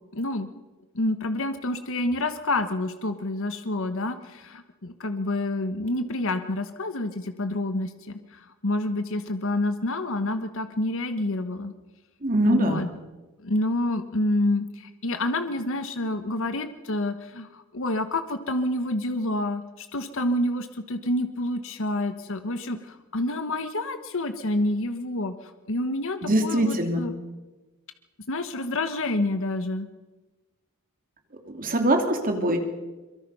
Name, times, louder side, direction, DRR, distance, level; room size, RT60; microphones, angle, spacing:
voice 1, 0.1-0.5 0.9-11.7 12.4-12.9 13.4-27.1 28.3-29.9, left 1 dB, 65° left, 9 dB, 1.3 m, -28 dB
voice 2, 12.2-12.8 26.2-27.0 31.5-32.6, right 1 dB, 40° right, 5 dB, 2.8 m, -23 dB
24.0 x 23.0 x 5.6 m, 1.2 s
head